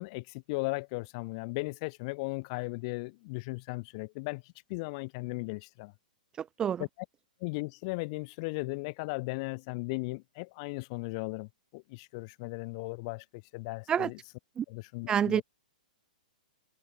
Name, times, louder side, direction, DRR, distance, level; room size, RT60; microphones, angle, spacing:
voice 1, 0.0-5.9 6.8-7.1 7.4-14.2 14.7-15.4, left 27 dB, 40° left, 7.6 m, -37 dB
voice 2, 15.1-15.4, right 8 dB, 15° right, 1.6 m, -27 dB
hypercardioid pair, 145°, 5 cm